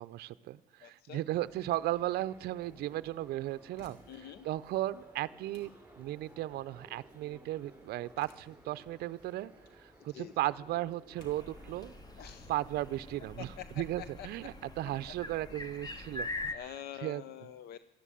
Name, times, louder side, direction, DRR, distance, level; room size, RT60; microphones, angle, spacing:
voice 1, 0.0-5.7 6.0-9.5 9.8-11.9 12.5-16.7 17.0-17.2, right 15 dB, 70° right, 14 dB, 0.5 m, -36 dB
voice 2, 0.8-1.2 4.1-4.5 10.1-10.3 12.2-12.5 13.4-14.3 16.5-17.8, left 11 dB, 70° left, 15 dB, 0.6 m, -46 dB
sound 1, 1.3-13.2, right 1 dB, 10° right, 4.1 m, -58 dB
sound 2, 3.6-14.2, left 2 dB, 90° left, 2.9 m, -65 dB
sound 3, 11.2-16.5, left 2 dB, 25° left, 1.2 m, -43 dB
13.0 x 11.0 x 8.4 m, 0.98 s
cardioid pair, 110°, 17 cm